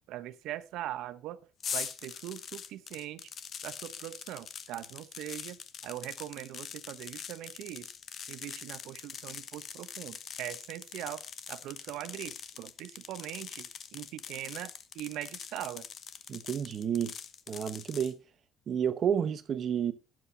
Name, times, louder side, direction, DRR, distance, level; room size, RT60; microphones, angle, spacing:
voice 1, 0.1-1.4 1.7-3.3 3.6-7.9 8.3-15.9, right 13 dB, 80° right, 0.8 m, -41 dB
sound 1, 1.6-18.1, left 7 dB, 45° left, 1.0 m, -43 dB
voice 2, 16.3-17.1 17.5-18.2 18.7-19.9, right 8 dB, 45° right, 0.9 m, -30 dB
19.5 x 7.6 x 2.7 m
cardioid pair, 120°, 0 cm